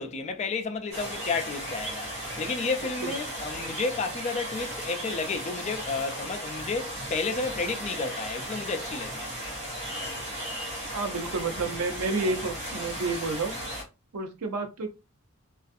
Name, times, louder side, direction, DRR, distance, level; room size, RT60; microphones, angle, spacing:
voice 1, 0.0-9.2, left 4 dB, 30° left, 0.4 m, -31 dB
sound 1, 0.9-13.8, equal, 55° right, 1.3 m, -36 dB
voice 2, 10.9-13.5 14.1-14.9, right 3 dB, 90° right, 0.6 m, -30 dB
2.5 x 2.4 x 2.4 m
head